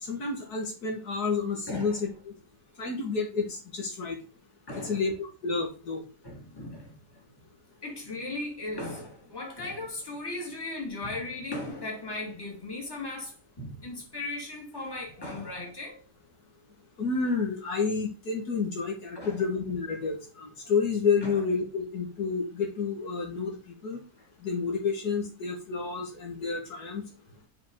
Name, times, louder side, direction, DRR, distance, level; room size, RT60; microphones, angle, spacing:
voice 1, 0.0-2.3 2.8-4.2 4.8-6.0 17.0-23.6 23.8-24.0 24.4-27.1, left 5 dB, 70° left, 2.3 m, -30 dB
voice 2, 1.7-2.0 4.7-5.0 6.2-7.2 7.8-16.0 19.1-19.5 21.2-21.4, left 2 dB, 15° left, 2.5 m, -37 dB
8.5 x 5.2 x 3.8 m
omnidirectional pair, 1.8 m